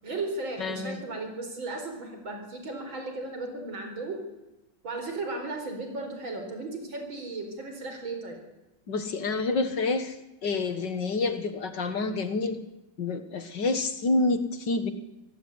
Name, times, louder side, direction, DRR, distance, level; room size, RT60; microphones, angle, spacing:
voice 1, 0.0-4.2 4.8-8.4, right 2 dB, 80° right, 4 dB, 5.2 m, -35 dB
voice 2, 0.6-1.0 8.9-10.2 10.4-12.6 13.0-14.9, left 3 dB, 65° left, 10 dB, 2.2 m, -28 dB
25.5 x 17.5 x 9.8 m, 0.97 s
omnidirectional pair, 2.1 m